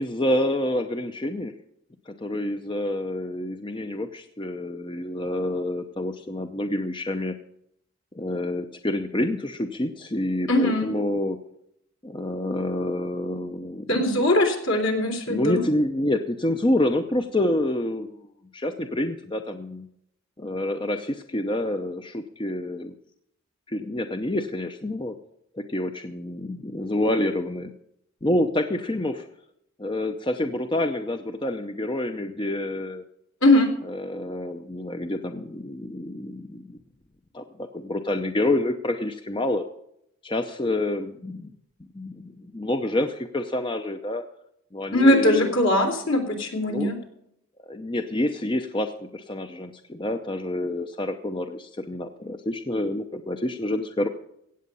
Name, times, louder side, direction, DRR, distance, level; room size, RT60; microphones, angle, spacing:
voice 1, 0.0-1.5 2.1-7.4 8.1-11.4 12.0-14.0 15.3-18.2 18.5-19.9 20.4-22.9 23.7-25.2 25.6-27.7 28.2-29.3 29.8-33.0 33.8-36.8 37.3-39.7 40.2-41.5 41.9-44.2 44.7-45.5 46.7-46.9 47.6-54.1, left 1 dB, 25° left, 7 dB, 0.7 m, -28 dB
voice 2, 10.5-10.9 13.9-15.6 33.4-33.7 44.9-46.9, left 1 dB, 75° left, 2 dB, 3.3 m, -20 dB
16.0 x 8.5 x 5.5 m, 0.75 s
head